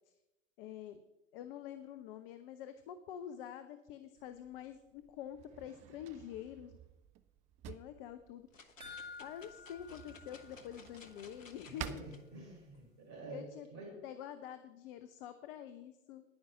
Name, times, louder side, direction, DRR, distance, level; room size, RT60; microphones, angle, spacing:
voice 1, 0.6-1.0 1.3-6.8 7.6-8.5 9.2-12.0 13.3-13.7 14.0-16.2, left 10 dB, 45° left, 10 dB, 0.8 m, -47 dB
Drawer open or close, 4.2-12.9, right 11 dB, 20° right, 0.4 m, -53 dB
sound 1, 8.5-12.2 12.8-12.9, left 4 dB, 75° left, 1.2 m, -58 dB
sound 2, 8.8-11.3 11.6-11.7 12.2-12.3, left 4 dB, 85° right, 4.2 m, -52 dB
voice 2, 11.7-14.1, right 2 dB, 45° right, 1 dB, 5.0 m, -49 dB
10.0 x 9.5 x 6.0 m, 0.97 s
figure-of-eight pair, 90°, 39 cm